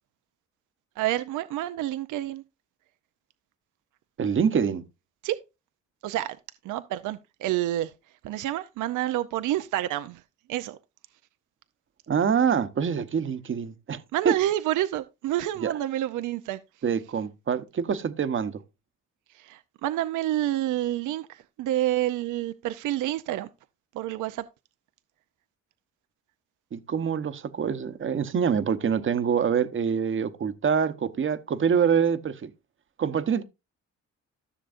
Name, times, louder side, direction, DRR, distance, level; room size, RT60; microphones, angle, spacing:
voice 1, 1.0-2.4 5.2-5.4 6.0-6.4 6.6-7.9 8.2-10.2 10.5-10.8 14.1-16.6 19.4-23.5 23.9-24.4, right 14 dB, 80° right, 0.6 m, -28 dB
voice 2, 4.2-4.8 12.1-14.3 15.6-15.7 16.8-18.6 26.7-32.5 33.0-33.4, right 7 dB, 40° right, 0.9 m, -25 dB
14.0 x 6.7 x 2.5 m
cardioid pair, 90°, 30 cm